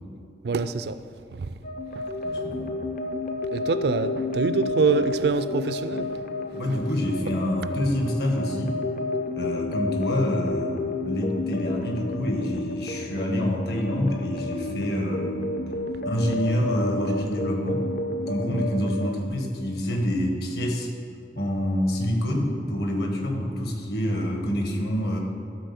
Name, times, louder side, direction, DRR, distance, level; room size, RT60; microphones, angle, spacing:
voice 1, 0.4-1.0 1.3-1.6 1.9-2.1 3.5-6.1, right 4 dB, 65° right, 12 dB, 0.4 m, -25 dB
sound 1, 1.6-19.3, left 2 dB, 45° left, 0.6 m, -31 dB
voice 2, 2.2-2.7 6.5-8.8 9.3-15.4 16.0-17.9 18.2-20.9 21.3-25.2, equal, 60° left, 2 dB, 1.4 m, -27 dB
12.5 x 4.2 x 7.0 m, 2.5 s
head